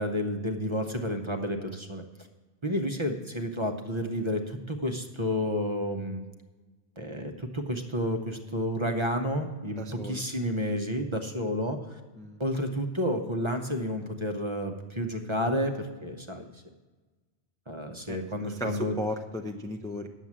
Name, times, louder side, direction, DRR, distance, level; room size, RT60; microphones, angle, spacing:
voice 1, 0.0-2.0 2.6-6.2 7.0-12.0 12.4-16.6 17.7-19.0, equal, 30° right, 4 dB, 0.7 m, -30 dB
voice 2, 9.8-10.2 12.1-12.4 18.1-20.1, left 1 dB, 5° left, 3 dB, 0.5 m, -36 dB
9.5 x 7.3 x 7.3 m, 1.3 s
omnidirectional pair, 1.1 m